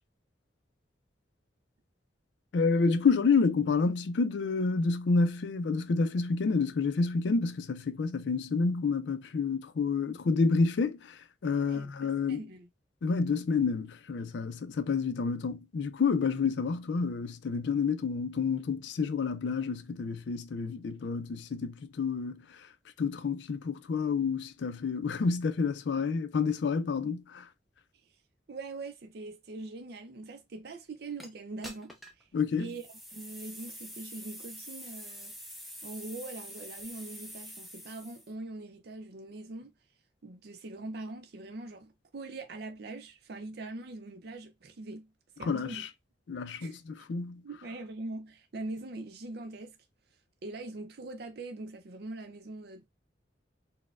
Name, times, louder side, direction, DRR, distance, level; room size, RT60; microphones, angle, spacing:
voice 1, 2.5-12.5 13.0-22.7 23.0-27.5 32.3-32.7 45.4-45.9 46.3-47.4, left 4 dB, 70° left, 0.4 m, -29 dB
voice 2, 12.3-12.7 27.0-27.1 28.5-32.3 32.6-35.3 35.8-39.7 40.2-45.1 45.4-45.9 46.6-46.8 47.4-49.8 50.4-52.9, right 2 dB, 55° right, 0.5 m, -42 dB
sound 1, 31.2-31.3 31.6-32.2 32.7-38.3, equal, ahead, 0.5 m, -46 dB
4.1 x 2.1 x 2.4 m
head